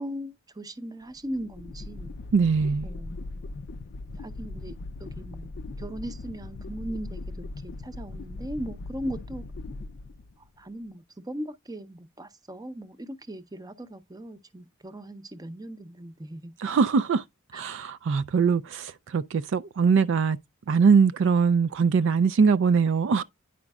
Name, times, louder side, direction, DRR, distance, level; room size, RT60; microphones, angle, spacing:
voice 1, 0.0-2.1 2.8-3.2 4.2-5.5 5.8-9.5 10.4-16.5 17.5-17.6, equal, 15° right, 0.6 m, -38 dB
sound 1, 1.1-10.6, left 2 dB, 50° left, 0.4 m, -39 dB
voice 2, 2.3-2.9 16.6-17.2 17.5-20.4 20.7-23.2, right 5 dB, 60° right, 0.4 m, -22 dB
9.7 x 5.1 x 2.3 m
head